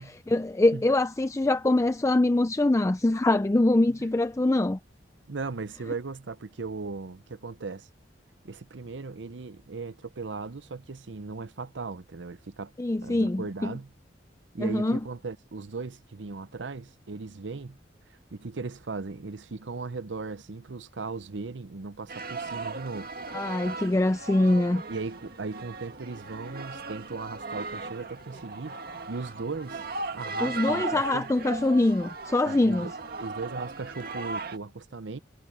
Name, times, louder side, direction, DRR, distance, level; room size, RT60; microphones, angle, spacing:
voice 1, 0.3-4.8 12.8-13.7 14.6-15.0 23.3-24.8 30.4-32.9, left 2 dB, 15° left, 0.4 m, -24 dB
voice 2, 5.3-7.9 8.4-12.7 13.0-13.9 14.5-17.8 18.3-23.1 24.9-29.9 30.1-31.3 32.4-35.2, right 4 dB, 80° right, 0.7 m, -37 dB
sound 1, 22.1-34.6, right 3 dB, 55° right, 2.0 m, -37 dB
Laughter, 27.8-32.3, left 2 dB, 60° left, 7.1 m, -62 dB
head